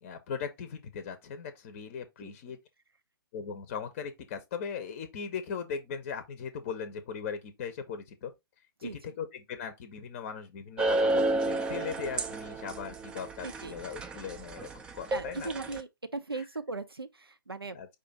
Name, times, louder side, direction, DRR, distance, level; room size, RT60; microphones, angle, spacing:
voice 1, 0.0-2.6 3.3-8.3 8.8-8.9 9.2-15.5 16.4-16.5 17.7-17.9, left 6 dB, 35° left, 0.7 m, -39 dB
voice 2, 2.2-2.5 8.8-9.1 13.4-13.9 15.1-17.8, right 3 dB, 90° right, 0.5 m, -39 dB
sound 1, 10.8-15.8, right 2 dB, 10° right, 0.3 m, -31 dB
4.9 x 2.5 x 4.1 m
figure-of-eight pair, 125°, 12 cm